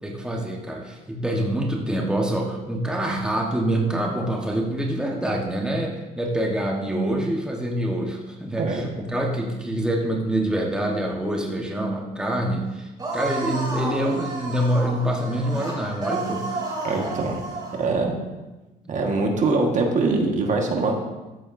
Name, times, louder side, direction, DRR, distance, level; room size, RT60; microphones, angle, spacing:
voice 1, 0.0-16.6 18.8-19.1, right 1 dB, 5° right, 0 dB, 1.3 m, -26 dB
sound 1, 13.0-17.9, right 3 dB, 25° right, 3.8 m, -31 dB
voice 2, 16.8-17.4 17.8-18.1 18.9-20.9, right 3 dB, 45° right, 2 dB, 1.6 m, -23 dB
13.0 x 9.3 x 2.7 m, 1.1 s
cardioid pair, 110°, 17 cm